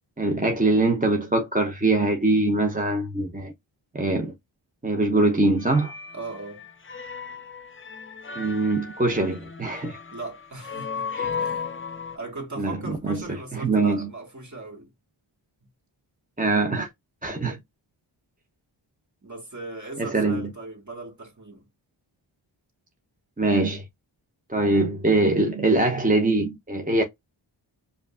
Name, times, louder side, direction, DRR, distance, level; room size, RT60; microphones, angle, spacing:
voice 1, 0.2-3.5 3.9-4.3 4.8-5.9 8.4-10.0 11.1-11.3 12.6-14.1 16.4-16.9 17.2-17.6 20.0-20.5 23.4-23.8 24.5-27.0, right 2 dB, 15° right, 0.7 m, -23 dB
sound 1, 5.6-12.2, left 6 dB, 25° left, 0.6 m, -35 dB
voice 2, 6.1-6.6 10.1-11.7 12.1-14.9 19.2-21.7, right 2 dB, 35° right, 1.7 m, -38 dB
5.0 x 2.5 x 2.4 m
wide cardioid pair, 65°, 48 cm